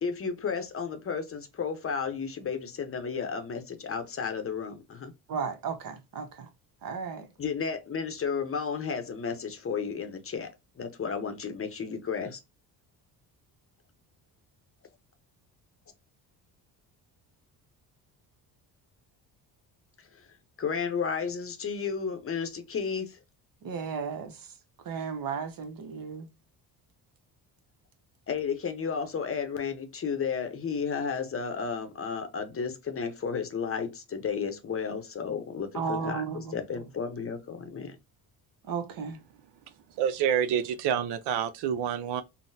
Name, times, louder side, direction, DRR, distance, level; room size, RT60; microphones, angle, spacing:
voice 1, 0.0-5.1 7.4-10.5 10.8-12.4 20.1-20.3 20.6-23.2 28.3-38.0, left 6 dB, 35° left, 0.7 m, -33 dB
voice 2, 5.3-6.5 6.8-7.2 23.6-24.3 24.9-26.3 35.7-36.6 38.7-39.2, right 6 dB, 55° right, 0.9 m, -34 dB
voice 3, 40.0-42.2, right 8 dB, 70° right, 0.5 m, -27 dB
3.7 x 2.0 x 2.6 m
supercardioid pair, 75°, 41 cm